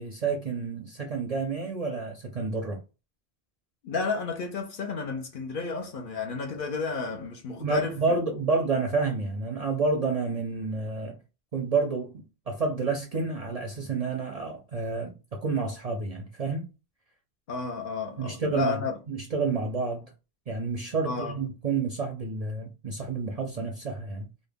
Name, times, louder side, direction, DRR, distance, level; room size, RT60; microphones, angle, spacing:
voice 1, 0.0-2.8 7.6-11.2 11.5-16.7 18.2-20.1 20.5-24.3, right 4 dB, 50° right, 0.5 m, -29 dB
voice 2, 3.8-8.2 17.5-19.0 21.0-21.4, left 4 dB, 60° left, 0.7 m, -32 dB
2.1 x 2.1 x 3.3 m
omnidirectional pair, 1.1 m